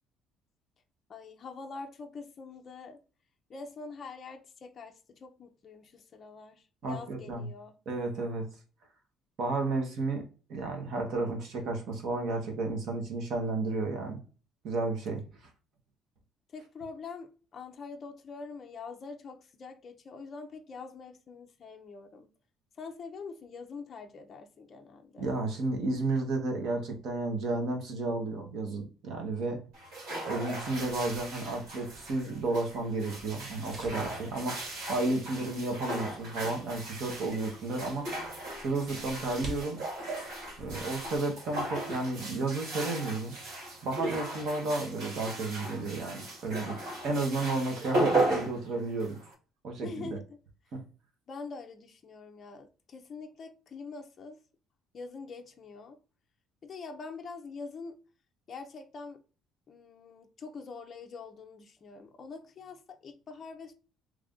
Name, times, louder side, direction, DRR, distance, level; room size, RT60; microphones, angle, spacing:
voice 1, 1.1-3.0 3.5-7.8 16.5-22.3 22.7-25.3 49.8-50.4 51.3-54.4 54.9-56.0 56.6-58.0 58.5-59.2 59.7-63.7, left 4 dB, 30° left, 0.5 m, -44 dB
voice 2, 6.8-7.5 7.9-8.5 9.4-10.2 10.5-14.2 14.6-15.2 25.2-29.6 30.2-34.6 34.9-38.1 38.6-39.8 40.6-43.3 43.8-46.8 47.0-49.2 49.6-50.2 50.7-50.8, right 2 dB, 50° right, 1.0 m, -32 dB
sound 1, 29.7-49.3, right 1 dB, 90° right, 1.8 m, -36 dB
sound 2, 30.6-41.2, right 1 dB, 30° right, 0.7 m, -50 dB
3.2 x 2.5 x 3.5 m
cardioid pair, 175°, 0 cm